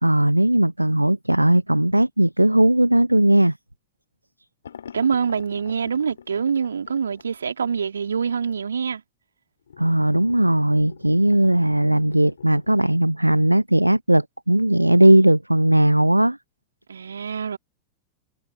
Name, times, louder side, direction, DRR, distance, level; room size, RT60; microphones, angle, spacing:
voice 1, 0.0-3.5 9.8-16.4, right 1 dB, 85° right, 0.6 m, -18 dB
sound 1, 4.6-7.3 9.7-12.8, left 7 dB, 70° left, 2.3 m, -44 dB
voice 2, 4.9-9.0 16.9-17.6, right 6 dB, 70° right, 2.6 m, -25 dB
figure-of-eight pair, 90°, 0 cm